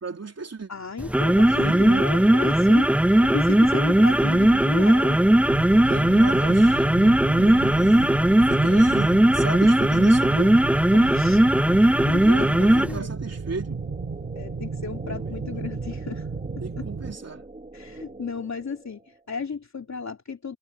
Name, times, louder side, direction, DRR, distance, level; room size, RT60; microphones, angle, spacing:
voice 1, 0.0-0.7 1.5-2.3 4.0-4.6 5.8-10.6 12.2-13.8 15.1-15.4 16.6-17.4, right 4 dB, 55° right, 3.6 m, -35 dB
voice 2, 0.7-1.7 2.0-2.9 3.2-5.2 10.9-11.5 11.7-13.2 14.3-16.3 16.7-16.9 17.7-20.6, left 5 dB, 65° left, 3.1 m, -34 dB
sound 1, 1.0-13.0, right 1 dB, 5° right, 0.4 m, -18 dB
sound 2, 5.5-17.2, right 4 dB, 70° right, 6.1 m, -33 dB
sound 3, 11.8-19.3, right 2 dB, 25° right, 4.4 m, -45 dB
wide cardioid pair, 110°, 31 cm